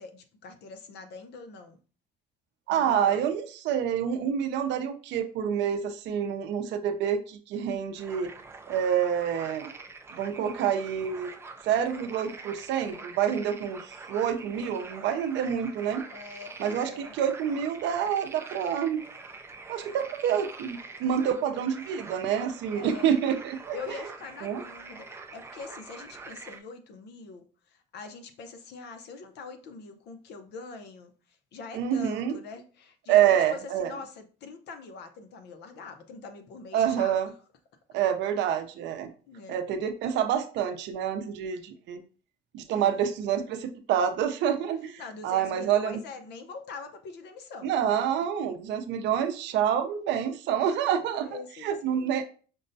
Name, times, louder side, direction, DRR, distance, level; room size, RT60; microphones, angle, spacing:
voice 1, 0.0-1.8 2.7-3.3 16.1-17.2 22.7-23.2 23.7-37.2 39.2-39.6 42.7-43.1 44.5-44.7 45.0-47.9 50.8-52.2, left 4 dB, 60° left, 7 dB, 0.7 m, -44 dB
voice 2, 2.7-8.3 8.7-9.7 10.1-11.3 11.6-16.0 16.6-19.0 19.7-24.0 24.4-24.6 31.7-32.4 33.1-33.9 36.7-37.3 37.9-39.1 39.5-42.0 42.5-46.0 47.6-51.3 51.6-52.2, right 9 dB, 65° right, 8 dB, 0.6 m, -27 dB
sound 1, 8.0-26.6, right 3 dB, 15° right, 0.3 m, -45 dB
5.3 x 2.1 x 2.6 m, 0.39 s
cardioid pair, 125°, 20 cm